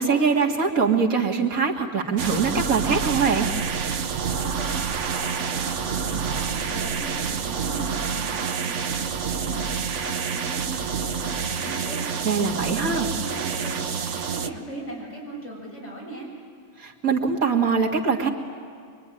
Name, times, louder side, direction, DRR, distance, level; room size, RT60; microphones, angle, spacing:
voice 1, 0.0-3.5 12.2-13.1 16.8-18.3, right 5 dB, 80° right, 0 dB, 2.5 m, -22 dB
sound 1, 2.2-14.5, right 6 dB, 60° right, 1.1 m, -28 dB
voice 2, 4.2-9.7 10.0-12.1 12.5-16.3, right 1 dB, 55° left, -3 dB, 7.3 m, -38 dB
25.0 x 23.5 x 9.9 m, 2.2 s
omnidirectional pair, 1.5 m